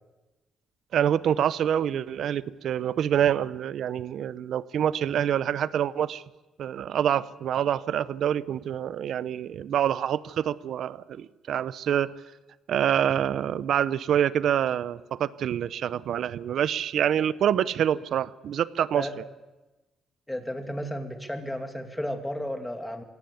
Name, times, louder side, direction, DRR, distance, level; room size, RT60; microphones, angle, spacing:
voice 1, 0.9-6.2 6.6-12.1 12.7-19.1, right 9 dB, 70° right, 17 dB, 0.7 m, -26 dB
voice 2, 20.3-23.0, equal, 5° left, 5 dB, 2.7 m, -33 dB
23.0 x 18.0 x 7.1 m, 1.1 s
cardioid pair, 90°, 0 cm